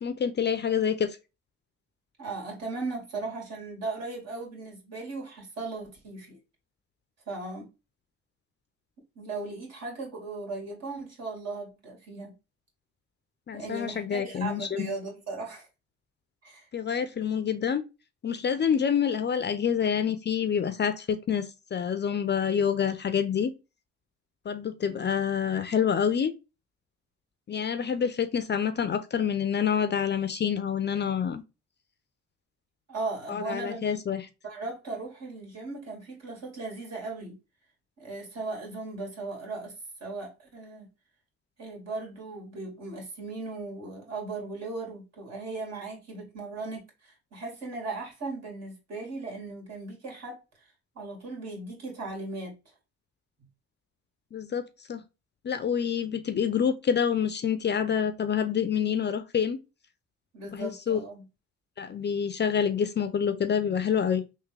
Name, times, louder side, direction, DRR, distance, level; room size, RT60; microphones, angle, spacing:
voice 1, 0.0-1.1 13.5-14.9 16.7-17.8 18.2-23.5 24.5-26.3 27.5-31.4 33.3-34.3 54.3-55.0 55.4-59.6 60.5-61.0 61.8-64.2, left 7 dB, 35° left, 0.5 m, -27 dB
voice 2, 2.2-6.4 7.3-7.7 9.2-12.4 13.5-15.7 16.4-16.7 32.9-34.0 34.4-37.4 38.0-40.9 41.6-52.5 60.3-61.2, right 3 dB, 60° right, 2.3 m, -37 dB
3.5 x 2.7 x 3.1 m
cardioid pair, 90°, 30 cm